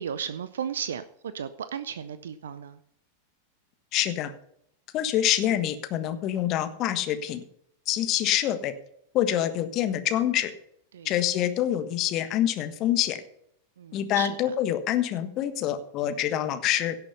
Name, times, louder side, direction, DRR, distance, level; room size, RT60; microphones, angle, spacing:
voice 1, 0.0-2.8 10.9-11.1 13.8-14.5, right 8 dB, 65° right, 13 dB, 0.6 m, -35 dB
voice 2, 3.9-4.3 4.9-7.4 7.9-8.7 9.1-10.5 11.0-13.2 13.9-17.0, left 11 dB, 35° left, 10 dB, 1.5 m, -26 dB
17.0 x 6.8 x 5.6 m, 0.71 s
figure-of-eight pair, 90°, 0 cm